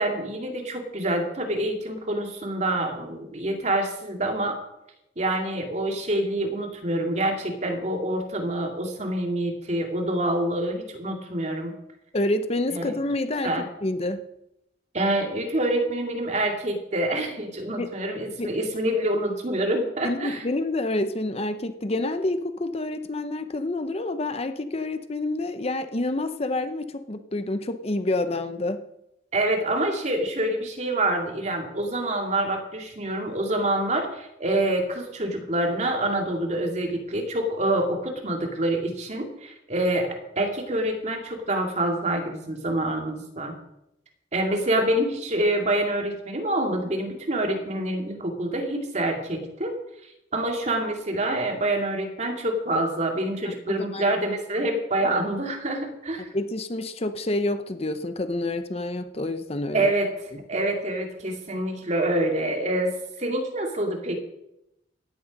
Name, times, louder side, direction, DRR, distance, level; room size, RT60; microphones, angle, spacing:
voice 1, 0.0-4.6 5.2-11.7 12.7-12.9 13.4-13.6 14.9-20.4 29.3-40.1 40.4-43.5 44.3-49.7 50.3-56.3 59.7-60.1 60.5-64.1, right 1 dB, 40° right, 3 dB, 2.4 m, -26 dB
voice 2, 12.1-13.5 13.8-14.2 17.8-17.9 18.4-18.5 20.0-28.8 53.4-54.1 54.6-54.7 56.3-59.9, left 2 dB, 35° left, 10 dB, 0.8 m, -28 dB
15.5 x 10.5 x 5.3 m, 0.84 s
head